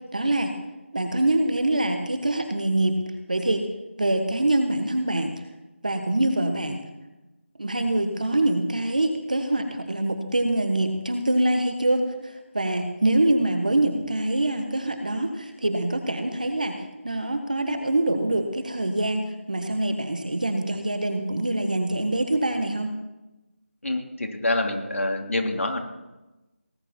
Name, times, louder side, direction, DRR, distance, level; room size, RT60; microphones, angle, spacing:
voice 1, 0.1-0.5 0.9-3.7 4.0-5.3 5.8-6.8 7.6-16.8 17.0-22.9, right 1 dB, 40° right, 6 dB, 1.4 m, -24 dB
voice 2, 23.8-25.8, left 2 dB, 80° left, 2 dB, 2.9 m, -26 dB
19.0 x 9.9 x 4.4 m, 1.0 s
figure-of-eight pair, 180°, 7 cm